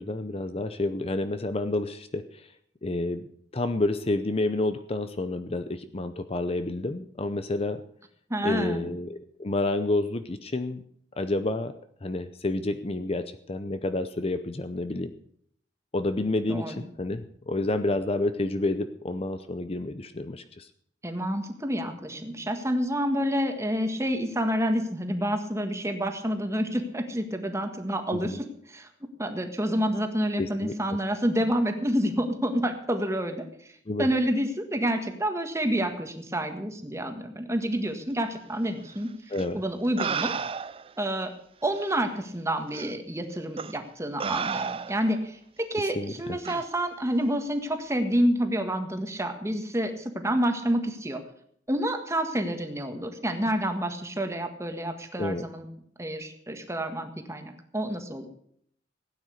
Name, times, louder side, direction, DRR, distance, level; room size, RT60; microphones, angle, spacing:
voice 1, 0.0-2.5 2.8-3.3 3.5-7.8 8.4-10.8 11.2-11.7 12.0-15.1 15.9-20.7 28.2-28.4 30.4-30.7 33.9-34.1 39.3-39.6 45.8-46.4 55.2-55.5, left 2 dB, 35° left, 10 dB, 0.7 m, -29 dB
voice 2, 8.3-8.9 16.5-16.8 21.0-28.9 29.2-33.4 34.0-39.1 39.5-40.3 41.0-41.3 41.6-51.2 51.7-55.6 56.0-58.3, equal, 15° right, 6 dB, 1.7 m, -28 dB
sound 1, 39.3-39.5 40.0-40.9 41.8-41.9 42.7-42.9 43.6-43.8 44.2-45.2 46.5-46.7, right 6 dB, 30° right, 0.4 m, -32 dB
16.5 x 9.4 x 6.5 m, 0.66 s
head